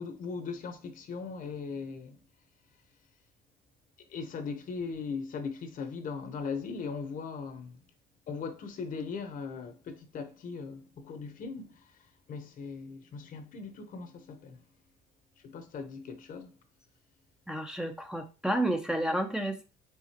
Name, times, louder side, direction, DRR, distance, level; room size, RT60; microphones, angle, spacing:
voice 1, 0.0-2.2 4.1-7.8 8.3-11.9 12.3-14.6 15.4-16.5, left 5 dB, 55° left, 0.9 m, -39 dB
voice 2, 17.5-19.6, right 1 dB, 5° right, 0.5 m, -31 dB
4.7 x 3.9 x 2.9 m
cardioid pair, 110°, 17 cm